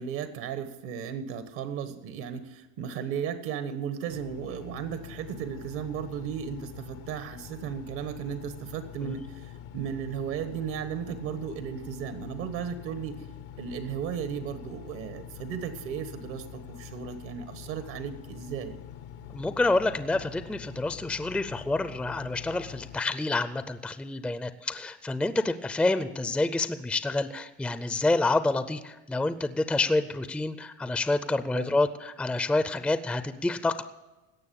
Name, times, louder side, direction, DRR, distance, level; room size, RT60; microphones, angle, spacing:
voice 1, 0.0-13.2 13.6-18.8 31.5-31.7, right 8 dB, 75° right, 9 dB, 1.4 m, -35 dB
Engine, 4.1-23.0, left 10 dB, 75° left, 0.8 m, -45 dB
voice 2, 19.3-33.8, left 2 dB, 5° left, 11 dB, 0.4 m, -28 dB
17.0 x 6.3 x 8.5 m, 1.1 s
supercardioid pair, 115°, 32 cm